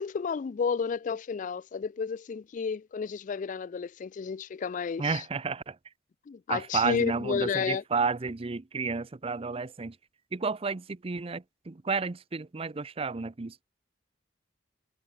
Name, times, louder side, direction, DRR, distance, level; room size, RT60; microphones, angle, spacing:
voice 1, 0.0-5.2 6.3-7.8, left 5 dB, 45° left, 0.4 m, -31 dB
voice 2, 5.0-5.8 6.5-10.0 10.3-13.6, right 4 dB, 30° right, 0.6 m, -31 dB
head